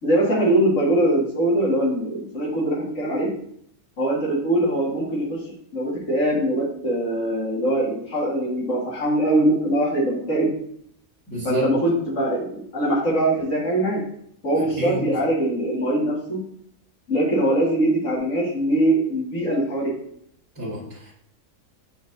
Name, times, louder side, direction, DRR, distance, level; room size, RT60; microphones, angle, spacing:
voice 1, 0.0-3.3 4.0-10.5 11.4-14.0 14.4-16.4 17.1-19.9, right 1 dB, 55° left, -6 dB, 2.5 m, -22 dB
voice 2, 11.3-11.7 14.8-15.1 20.5-21.1, right 1 dB, 10° left, -9 dB, 1.7 m, -28 dB
8.4 x 4.2 x 2.7 m, 0.68 s
omnidirectional pair, 1.6 m